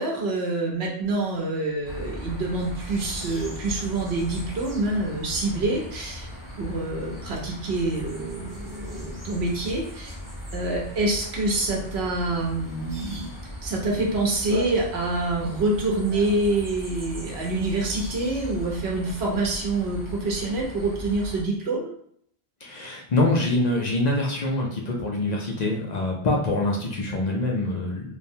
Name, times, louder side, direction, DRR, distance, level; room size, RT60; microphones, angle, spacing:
voice 1, 0.0-6.3 6.6-10.1 10.5-13.3 13.6-21.9, right 2 dB, 90° right, -1 dB, 1.0 m, -26 dB
sound 1, 1.8-21.4, equal, 20° right, 0.9 m, -38 dB
voice 2, 22.6-28.2, left 2 dB, 50° left, -1 dB, 0.6 m, -25 dB
3.2 x 2.1 x 2.7 m, 0.64 s
omnidirectional pair, 1.0 m